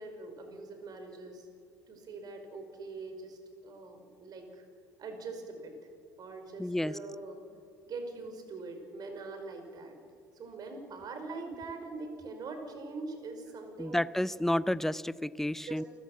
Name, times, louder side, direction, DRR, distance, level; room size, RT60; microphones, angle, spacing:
voice 1, 0.0-1.5 1.9-4.6 5.0-5.7 6.2-7.4 7.9-10.0 10.3-14.0 15.7-15.8, right 3 dB, 50° right, 5 dB, 5.1 m, -43 dB
voice 2, 6.6-7.0 13.8-15.8, left 1 dB, 5° left, 19 dB, 0.6 m, -31 dB
29.0 x 14.5 x 7.3 m, 2.3 s
hypercardioid pair, 60°, 9 cm